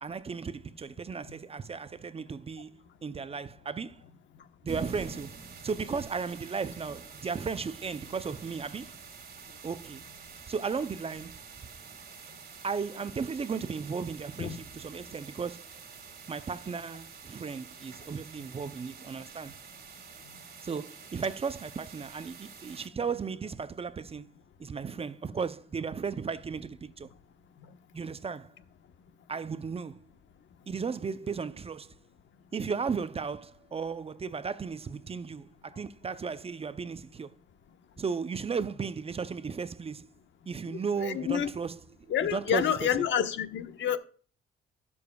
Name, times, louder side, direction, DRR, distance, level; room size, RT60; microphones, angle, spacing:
voice 1, 0.0-4.0 4.6-5.4 5.6-8.9 9.6-10.0 10.5-11.4 12.6-15.7 16.3-19.6 20.6-24.2 24.6-27.1 27.9-28.5 29.3-30.0 30.7-31.9 32.5-37.3 38.0-40.1 40.5-41.8 42.2-43.1, right 5 dB, 30° right, 0.6 m, -35 dB
sound 1, 4.7-22.9, right 5 dB, 50° right, 2.1 m, -47 dB
voice 2, 41.0-41.5 42.1-44.0, left 9 dB, 70° left, 1.2 m, -28 dB
17.5 x 7.0 x 2.3 m
cardioid pair, 90°, 20 cm